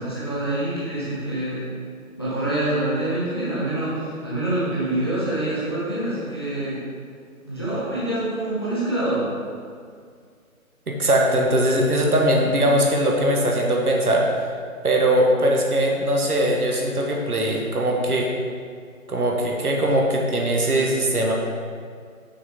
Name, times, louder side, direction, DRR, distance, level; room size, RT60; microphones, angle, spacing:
voice 1, 0.0-1.7 2.1-6.8 7.5-9.3, right 1 dB, 15° left, -10 dB, 0.9 m, -26 dB
voice 2, 10.9-14.3 14.8-18.3 19.1-21.3, right 1 dB, 85° right, 0 dB, 1.4 m, -20 dB
6.1 x 6.0 x 3.6 m, 2.1 s
figure-of-eight pair, 170°, 43 cm